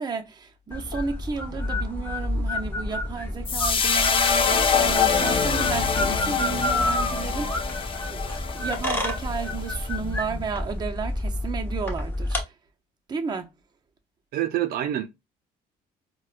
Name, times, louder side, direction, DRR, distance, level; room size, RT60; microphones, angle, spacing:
voice 1, 0.0-7.7 8.1-12.4 13.1-13.5, right 5 dB, 25° right, 0.6 m, -33 dB
sound 1, 0.7-12.4, left 1 dB, 10° left, 1.1 m, -30 dB
sound 2, 3.5-9.9, left 6 dB, 30° left, 0.5 m, -25 dB
voice 2, 14.3-15.1, right 12 dB, 65° right, 0.5 m, -26 dB
4.2 x 2.2 x 2.4 m
cardioid pair, 110°, 17 cm